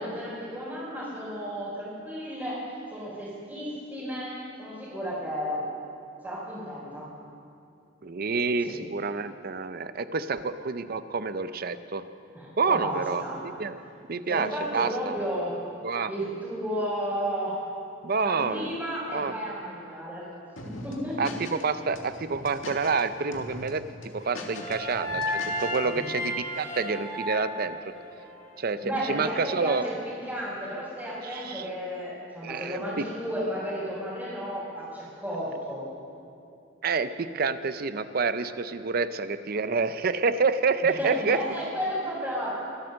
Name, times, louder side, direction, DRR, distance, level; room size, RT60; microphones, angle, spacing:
voice 1, 0.0-2.6 2.9-4.3 4.6-5.6 6.2-7.0 8.7-8.8 12.3-13.4 14.3-15.6 16.1-17.5 18.2-20.3 20.6-21.2 25.8-26.0 28.8-35.9 40.8-42.6, equal, 10° right, -10 dB, 3.8 m, -33 dB
voice 2, 8.0-12.0 12.6-13.2 13.6-13.8 14.1-15.2 15.8-16.1 18.0-18.8 19.1-19.3 21.2-23.8 24.1-27.8 28.6-29.9 31.2-31.7 32.4-33.1 36.8-41.4, right 4 dB, 50° right, 12 dB, 0.6 m, -28 dB
sound 1, 20.6-21.6 21.9-23.0 23.3-23.7 24.0-25.8, left 2 dB, 75° left, 1.9 m, -41 dB
sound 2, 24.2-28.4, left 1 dB, 40° left, 3.7 m, -33 dB
23.0 x 9.1 x 6.5 m, 2.6 s
head